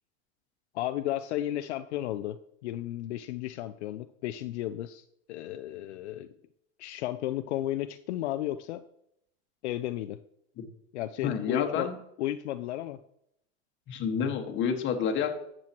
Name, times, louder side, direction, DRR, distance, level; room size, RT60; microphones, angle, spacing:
voice 1, 0.7-6.3 6.8-8.8 9.6-10.2 10.9-11.9 12.2-13.0, left 13 dB, 75° left, 10 dB, 0.6 m, -33 dB
voice 2, 11.2-11.9 13.9-15.3, left 7 dB, 35° left, 4 dB, 1.6 m, -29 dB
12.0 x 7.6 x 3.0 m, 0.75 s
hypercardioid pair, 115°, 34 cm